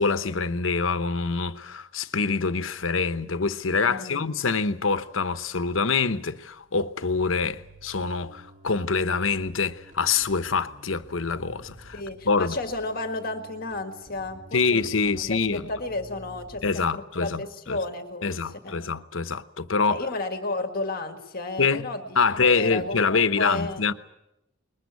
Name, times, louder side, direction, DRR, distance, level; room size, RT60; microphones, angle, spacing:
voice 1, 0.0-12.0 12.3-12.6 14.5-15.7 16.6-17.4 17.7-17.8 18.2-20.0 21.6-21.9 22.2-23.9, left 4 dB, 85° left, 1.0 m, -25 dB
voice 2, 3.8-4.3 11.9-18.8 19.9-23.8, left 2 dB, 50° left, 1.8 m, -33 dB
Bass guitar, 7.1-16.7, right 1 dB, 35° right, 2.4 m, -50 dB
21.0 x 21.0 x 8.3 m
head